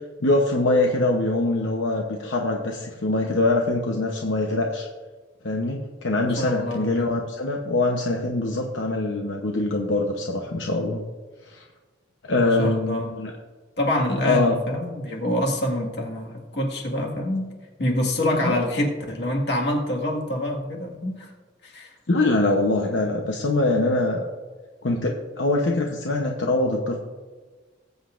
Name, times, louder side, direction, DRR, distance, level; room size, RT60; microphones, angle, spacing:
voice 1, 0.2-4.9 5.4-11.0 11.5-11.6 12.2-13.3 14.2-14.6 18.4-18.6 22.1-24.3 24.8-27.0, left 2 dB, 75° left, 1 dB, 0.9 m, -23 dB
voice 2, 6.2-7.1 12.3-13.1 13.8-17.5 17.8-21.3 21.6-21.9, left 1 dB, 60° left, -1 dB, 1.8 m, -26 dB
20.0 x 8.1 x 2.5 m, 1.4 s
head